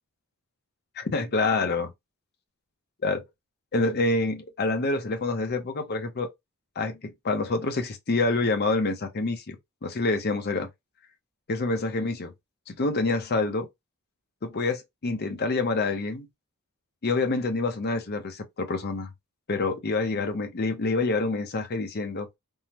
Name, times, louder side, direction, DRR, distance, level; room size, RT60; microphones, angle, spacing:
voice 1, 1.0-1.9 3.0-3.2 3.7-6.3 6.8-9.6 9.8-10.7 11.5-12.3 12.7-13.7 14.4-16.3 17.0-19.1 19.5-22.3, left 3 dB, 45° left, 0.6 m, -27 dB
3.6 x 2.0 x 2.8 m
head